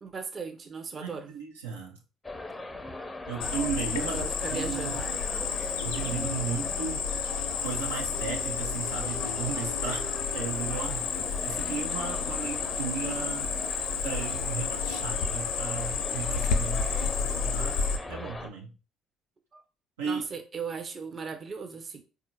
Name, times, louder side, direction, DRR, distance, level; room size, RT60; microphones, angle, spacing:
voice 1, 0.0-1.4 4.0-5.1 19.5-19.6 20.0-22.0, right 5 dB, 40° right, 7 dB, 0.7 m, -37 dB
voice 2, 1.0-2.0 3.3-4.2 4.5-4.9 5.8-7.1 7.6-10.0 10.3-11.1 11.4-13.5 14.0-17.1 17.4-17.8 18.1-18.7 20.0-20.2, right 6 dB, 85° right, -1 dB, 0.6 m, -35 dB
sound 1, 2.2-18.5, left 2 dB, 20° left, 0.6 m, -40 dB
Cricket, 3.4-18.0, left 6 dB, 75° left, 0.5 m, -31 dB
4.2 x 2.4 x 2.9 m, 0.32 s
hypercardioid pair, 55°, 0 cm